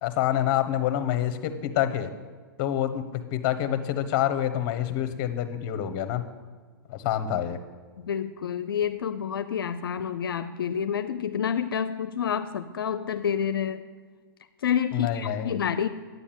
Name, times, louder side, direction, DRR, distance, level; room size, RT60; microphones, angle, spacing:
voice 1, 0.0-2.1 2.6-6.2 6.9-7.6 14.9-15.6, left 11 dB, 40° left, 10 dB, 1.1 m, -27 dB
voice 2, 8.0-13.8 14.6-15.9, left 8 dB, 80° left, 11 dB, 0.6 m, -28 dB
9.6 x 7.2 x 8.9 m, 1.5 s
hypercardioid pair, 125°, 12 cm